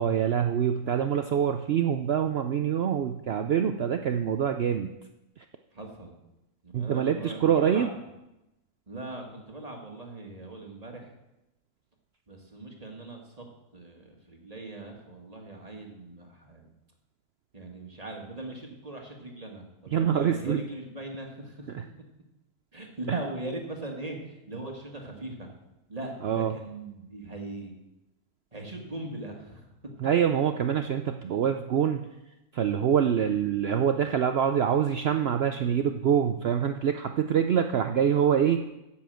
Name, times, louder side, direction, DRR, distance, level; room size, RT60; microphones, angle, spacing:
voice 1, 0.0-4.9 5.4-5.5 6.7-7.9 19.9-20.6 21.7-21.8 23.1-23.2 26.2-26.5 30.0-32.0 32.5-38.6, right 8 dB, 70° right, 7 dB, 0.6 m, -25 dB
voice 2, 5.7-6.1 6.6-7.9 8.9-11.1 12.3-13.4 13.7-16.7 17.5-21.7 22.7-25.5 25.9-27.7 28.5-29.6, right 2 dB, 25° right, 1 dB, 1.6 m, -40 dB
8.5 x 7.3 x 7.7 m, 0.94 s
omnidirectional pair, 1.6 m